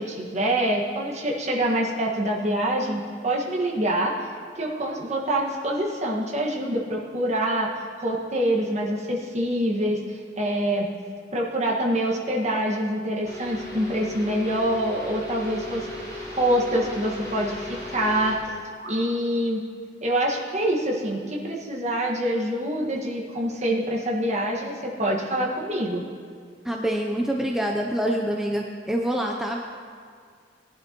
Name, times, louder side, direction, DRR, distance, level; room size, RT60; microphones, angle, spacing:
voice 1, 0.0-4.1 4.5-7.7 8.0-10.0 10.4-10.9 11.3-15.9 16.1-18.4 18.9-19.6 20.0-26.0, right 1 dB, 40° right, -2 dB, 1.6 m, -25 dB
sound 1, 13.2-18.3, left 1 dB, 20° left, 3.9 m, -36 dB
sound 2, 18.4-19.1, right 1 dB, 70° right, 2.7 m, -44 dB
voice 2, 26.6-29.6, right 1 dB, ahead, 0 dB, 0.6 m, -26 dB
19.5 x 11.0 x 3.0 m, 2.1 s
head